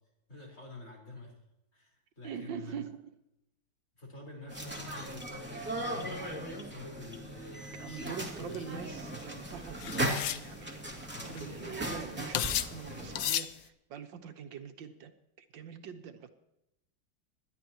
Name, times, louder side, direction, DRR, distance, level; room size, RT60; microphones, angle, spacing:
voice 1, 0.3-1.3 1.7-2.8 4.0-8.8 11.1-11.4, left 2 dB, 40° left, 4.8 m, -48 dB
voice 2, 2.2-3.1 7.8-16.3, right 7 dB, 85° right, 1.8 m, -44 dB
sound 1, 4.5-13.2, right 1 dB, 5° right, 2.4 m, -38 dB
sound 2, 8.4-8.6 9.8-10.5 11.1-11.2 11.4-11.7 12.3-12.8 13.2-13.5, left 11 dB, 90° left, 1.5 m, -32 dB
26.5 x 12.0 x 3.0 m
omnidirectional pair, 2.0 m